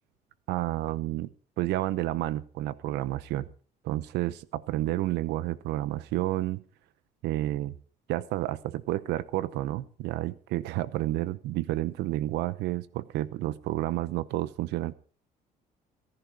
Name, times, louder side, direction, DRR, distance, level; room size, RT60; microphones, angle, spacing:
voice 1, 0.5-1.3 1.6-3.5 3.8-6.6 7.2-7.7 8.1-14.9, right 15 dB, 85° right, 18 dB, 0.9 m, -30 dB
17.5 x 11.0 x 5.1 m, 0.40 s
cardioid pair, 110°, 17 cm